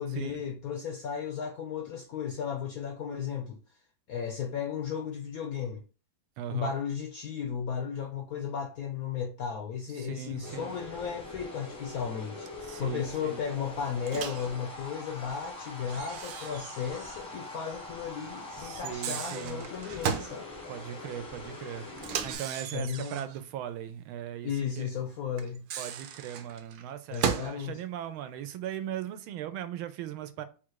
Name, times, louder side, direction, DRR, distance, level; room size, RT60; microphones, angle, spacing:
voice 1, 0.0-3.6 4.1-5.8 6.5-12.5 12.8-20.5 22.7-23.2 24.4-25.7 27.1-27.8, left 7 dB, 80° left, 0.8 m, -35 dB
voice 2, 6.4-6.7 10.0-10.7 12.6-13.4 18.6-19.6 20.7-21.9 22.2-24.5 24.8-24.9 25.8-30.5, right 10 dB, 90° right, 1.4 m, -38 dB
sound 1, 10.3-22.3, left 2 dB, 5° left, 0.4 m, -43 dB
Microwave oven, 14.1-14.5 15.9-17.3 17.5-17.6 18.7-20.4 22.0-23.4 25.4-27.6, right 8 dB, 75° right, 1.2 m, -35 dB
3.9 x 2.5 x 4.5 m
omnidirectional pair, 2.2 m